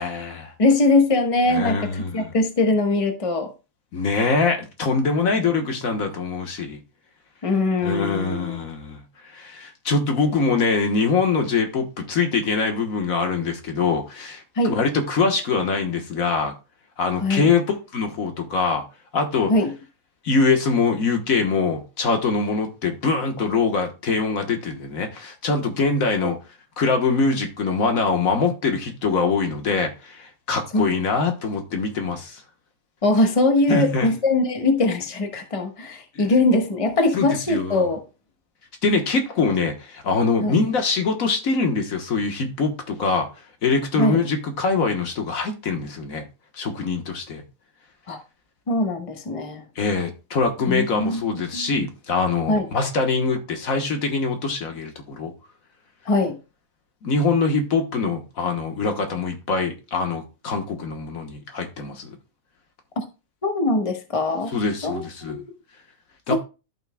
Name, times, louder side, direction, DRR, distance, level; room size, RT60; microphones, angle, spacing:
voice 1, 0.0-0.5 1.5-2.3 3.9-6.8 7.8-16.5 17.0-18.8 19.1-19.5 20.2-26.4 26.8-32.4 33.7-34.1 36.1-36.3 37.1-37.8 38.8-43.3 43.6-46.2 46.5-47.4 49.7-55.3 57.0-62.2 64.5-65.4 66.3-66.4, left 4 dB, 70° left, 1.6 m, -23 dB
voice 2, 0.6-3.5 5.2-5.3 7.4-8.6 14.5-14.7 17.2-17.5 19.5-19.7 26.2-26.3 30.7-30.8 33.0-38.0 40.4-40.6 44.0-44.2 48.1-48.2 48.7-49.6 50.7-51.7 52.5-52.7 56.1-56.4 63.4-64.5 64.8-65.4 66.3-66.4, left 2 dB, 25° left, 1.2 m, -22 dB
13.5 x 5.9 x 2.2 m
omnidirectional pair, 1.5 m